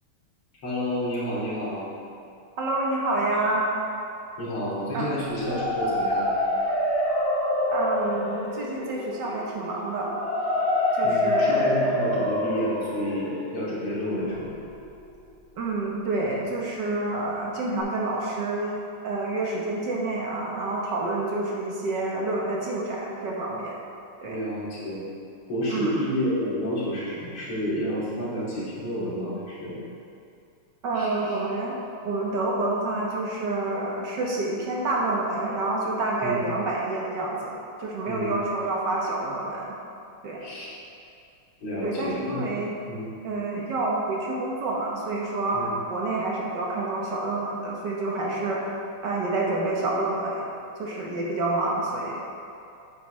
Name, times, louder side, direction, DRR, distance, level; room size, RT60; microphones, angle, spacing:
voice 1, 0.6-2.0 4.4-6.3 11.0-14.7 24.2-25.0 25.5-29.8 30.9-31.4 36.2-36.5 38.1-38.4 40.4-40.7 41.6-42.5 42.9-43.1 45.5-45.7, equal, 80° left, -9 dB, 3.3 m, -30 dB
voice 2, 2.6-3.7 4.9-5.1 7.7-10.2 11.0-11.6 15.6-23.8 24.2-24.4 25.7-25.9 30.8-39.8 40.2-40.4 41.8-42.7 43.2-48.7 49.0-50.5 50.8-52.2, right 2 dB, 60° right, -3 dB, 1.6 m, -28 dB
sound 1, 5.2-15.1, left 1 dB, 25° right, 1.5 m, -27 dB
9.2 x 8.3 x 3.2 m, 2.6 s
omnidirectional pair, 2.4 m